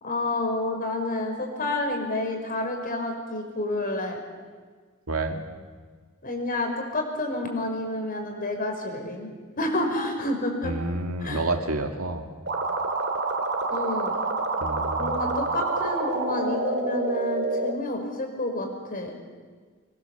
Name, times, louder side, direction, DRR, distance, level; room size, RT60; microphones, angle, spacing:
voice 1, 0.0-4.2 6.2-9.3 9.6-10.7 11.2-11.4 13.7-14.1 15.0-19.1, left 2 dB, 40° left, 3 dB, 5.4 m, -29 dB
voice 2, 5.1-5.4 10.6-12.2 14.6-15.4, right 2 dB, 75° right, 5 dB, 2.4 m, -29 dB
sound 1, 12.5-17.7, right 3 dB, 50° right, 2.4 m, -27 dB
26.5 x 22.0 x 7.4 m, 1.5 s
head